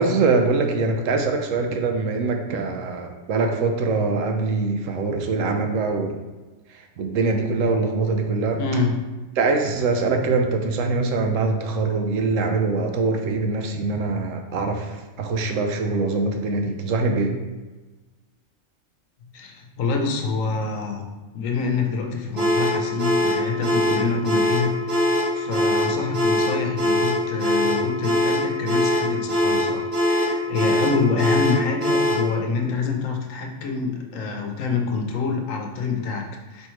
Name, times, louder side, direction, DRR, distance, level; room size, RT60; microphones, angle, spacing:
voice 1, 0.0-6.2 6.7-8.6 9.4-17.3, right 3 dB, 75° right, 4 dB, 0.9 m, -23 dB
voice 2, 8.6-9.0 19.3-36.7, left 4 dB, 80° left, 3 dB, 1.1 m, -26 dB
sound 1, 22.4-32.3, equal, 45° right, 1.2 m, -22 dB
4.4 x 3.3 x 3.1 m, 1.2 s
omnidirectional pair, 1.4 m